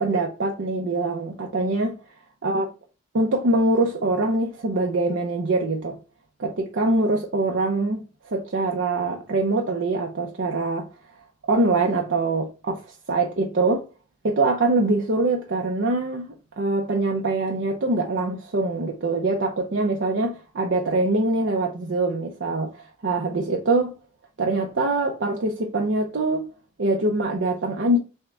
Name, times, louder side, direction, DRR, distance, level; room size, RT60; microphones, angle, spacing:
voice 1, 0.0-2.0 2.4-2.7 3.1-6.0 6.4-10.9 11.4-13.9 14.2-23.9 24.4-26.5 26.8-28.0, right 2 dB, 75° right, 0.6 m, -24 dB
6.1 x 2.2 x 3.4 m
head